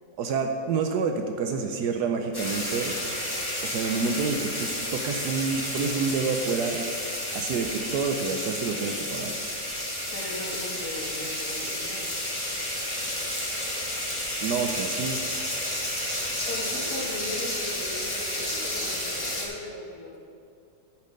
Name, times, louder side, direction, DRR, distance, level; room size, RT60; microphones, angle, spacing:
voice 1, 0.2-3.0 3.6-6.9 7.3-9.3 14.4-15.2, right 5 dB, 80° right, 5 dB, 1.3 m, -28 dB
sound 1, 2.3-19.5, left 1 dB, 15° left, 1.6 m, -31 dB
voice 2, 10.1-12.1 16.5-20.2, left 1 dB, 65° left, -6 dB, 2.8 m, -38 dB
10.5 x 5.9 x 6.4 m, 2.4 s
omnidirectional pair, 1.7 m